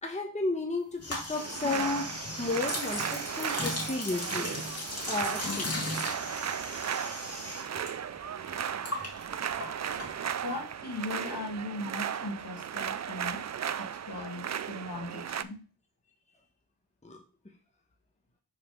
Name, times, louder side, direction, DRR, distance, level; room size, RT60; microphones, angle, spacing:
voice 1, 0.0-4.5 5.1-5.7 17.0-17.2, left 3 dB, 15° left, 2 dB, 1.1 m, -33 dB
sound 1, 1.0-10.6, left 2 dB, 35° left, 2.2 m, -37 dB
sound 2, 1.3-15.4, right 8 dB, 40° right, 0.4 m, -36 dB
voice 2, 10.4-13.4 13.8-15.6, left 2 dB, 60° left, 0 dB, 2.6 m, -38 dB
5.0 x 4.0 x 5.1 m, 0.37 s
cardioid pair, 50°, 44 cm